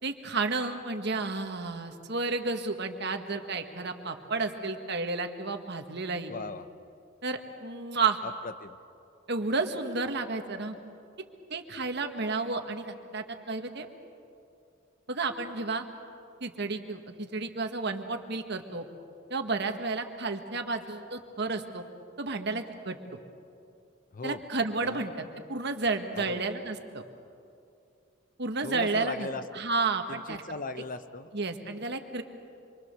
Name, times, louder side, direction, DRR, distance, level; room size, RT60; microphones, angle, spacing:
voice 1, 0.0-6.3 7.2-8.2 9.3-10.7 11.5-13.9 15.1-15.8 16.4-18.8 19.3-21.8 22.2-23.0 24.2-25.1 25.5-27.0 28.4-29.3 29.5-30.4 31.3-32.2, right 3 dB, 60° right, 6 dB, 1.6 m, -31 dB
voice 2, 6.3-6.7 8.2-8.8 24.1-24.4 24.8-25.0 26.1-26.5 28.6-29.4 30.1-31.3, left 3 dB, 45° left, 11 dB, 0.8 m, -38 dB
26.5 x 24.0 x 6.7 m, 2.5 s
head